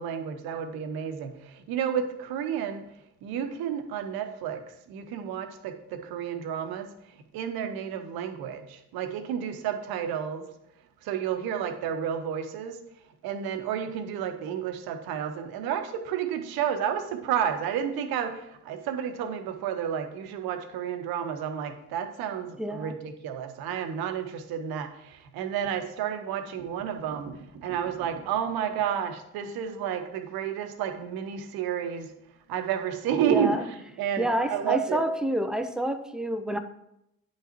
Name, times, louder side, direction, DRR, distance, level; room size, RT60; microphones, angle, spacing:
voice 1, 0.0-2.9 3.2-4.6 4.9-6.9 7.3-10.5 11.0-12.8 13.2-32.1 32.5-35.0, right 8 dB, 55° right, 7 dB, 0.9 m, -31 dB
voice 2, 22.6-22.9 33.2-33.6 34.2-36.6, equal, ahead, 9 dB, 0.3 m, -28 dB
10.0 x 5.6 x 3.0 m, 0.83 s
figure-of-eight pair, 45°, 45 cm